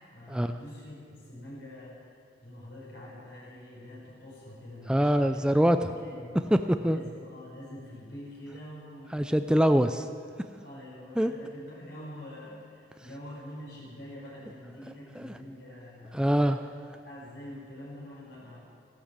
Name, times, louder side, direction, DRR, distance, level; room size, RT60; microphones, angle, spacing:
voice 1, 0.0-2.2 2.4-6.4 6.8-9.3 10.6-16.7 17.0-18.6, left 1 dB, 65° left, -6 dB, 5.0 m, -45 dB
voice 2, 4.9-5.8 6.5-7.0 9.1-10.1 11.2-11.3 15.2-15.3 16.1-16.6, equal, 5° right, 8 dB, 0.4 m, -23 dB
15.0 x 11.5 x 7.4 m, 2.3 s
head